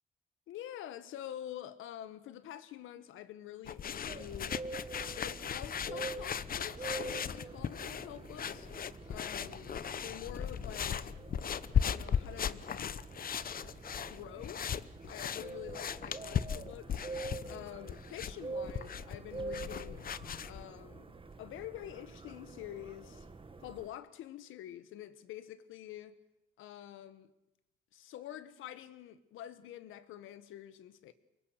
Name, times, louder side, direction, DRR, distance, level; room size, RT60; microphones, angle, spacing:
voice 1, 0.5-4.6 5.1-8.7 9.1-11.0 11.7-12.6 14.0-14.7 15.0-17.0 17.5-20.1 20.4-23.3 23.6-26.2 26.6-27.3 27.9-31.1, left 12 dB, 85° left, 1.6 m, -47 dB
sound 1, 3.6-20.6, left 8 dB, 45° left, 0.9 m, -37 dB
sound 2, 4.1-23.9, right 3 dB, 25° right, 1.9 m, -46 dB
25.0 x 22.5 x 6.7 m
cardioid pair, 90°, 20 cm